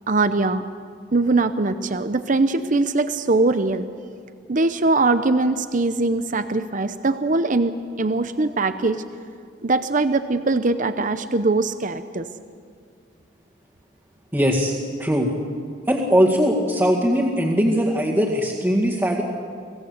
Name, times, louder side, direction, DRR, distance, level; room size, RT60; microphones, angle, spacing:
voice 1, 0.1-0.6 1.1-3.9 4.5-9.0 9.6-12.3, right 3 dB, 45° right, 11 dB, 0.7 m, -21 dB
voice 2, 14.3-14.7 15.0-15.3 15.9-19.2, equal, 15° right, -6 dB, 2.1 m, -20 dB
25.5 x 17.0 x 8.0 m, 2.2 s
head